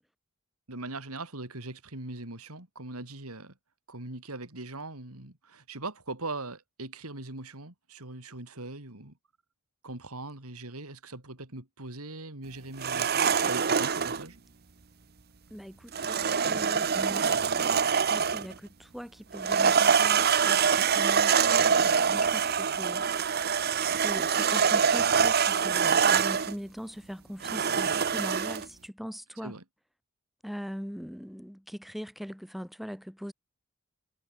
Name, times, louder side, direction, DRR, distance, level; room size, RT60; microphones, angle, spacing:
voice 1, 0.7-3.5 3.9-9.2 9.8-14.4 29.4-29.6, right 2 dB, 85° right, 3.7 m, -40 dB
sound 1, 12.8-14.2 15.9-18.5 19.3-26.5 27.4-28.7, right 6 dB, 45° right, 0.8 m, -25 dB
voice 2, 15.5-23.1 24.0-29.6 30.4-33.3, equal, ahead, 4.8 m, -41 dB
head